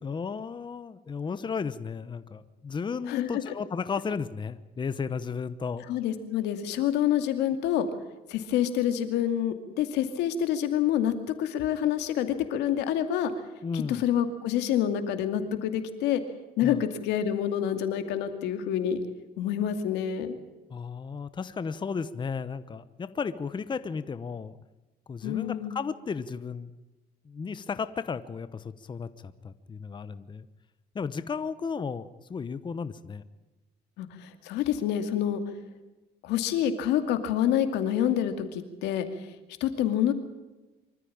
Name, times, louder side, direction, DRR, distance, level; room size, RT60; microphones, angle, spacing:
voice 1, 0.0-5.9 13.6-14.0 16.6-16.8 20.7-24.6 25.1-26.7 27.2-30.5 30.9-33.2, left 5 dB, 25° left, 13 dB, 1.0 m, -34 dB
voice 2, 3.1-3.5 5.9-7.9 8.3-11.1 11.4-13.3 13.7-16.2 16.6-19.0 19.4-20.4 25.2-25.7 34.0-35.4 36.2-39.0 39.6-40.1, left 10 dB, 90° left, 8 dB, 2.5 m, -27 dB
25.0 x 14.0 x 8.7 m, 1.1 s
cardioid pair, 110°, 17 cm